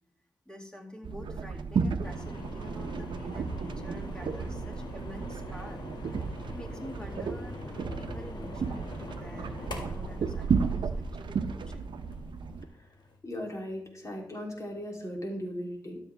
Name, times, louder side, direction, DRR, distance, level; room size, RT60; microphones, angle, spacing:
voice 1, 0.5-5.9 6.2-11.9, equal, 10° left, 1 dB, 2.2 m, -47 dB
sound 1, 1.0-12.6, right 5 dB, 85° right, 0.6 m, -33 dB
sound 2, 2.0-13.1, left 2 dB, 70° left, 1.9 m, -44 dB
Piano, 7.2-15.3, left 2 dB, 40° right, 1.0 m, -52 dB
voice 2, 13.2-16.0, equal, 40° left, 0 dB, 2.9 m, -37 dB
13.0 x 7.3 x 3.4 m, 0.71 s
cardioid pair, 65°, 8 cm